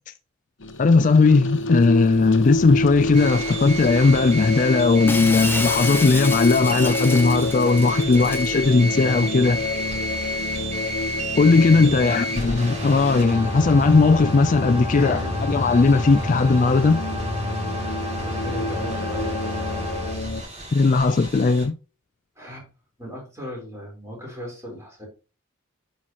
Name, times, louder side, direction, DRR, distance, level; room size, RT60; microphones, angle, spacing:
sound 1, 0.6-20.4, left 2 dB, 60° left, 1.0 m, -29 dB
voice 1, 0.8-9.6 11.4-17.0 20.7-21.8, left 3 dB, 40° left, 0.3 m, -18 dB
sound 2, 3.1-21.6, right 1 dB, 35° right, 5.0 m, -31 dB
Shatter, 5.1-8.5, left 3 dB, 10° left, 0.7 m, -30 dB
voice 2, 11.9-12.3 14.9-15.4 18.2-19.5 22.4-22.7 23.0-25.1, equal, 15° right, 4.0 m, -36 dB
9.7 x 5.7 x 2.9 m
head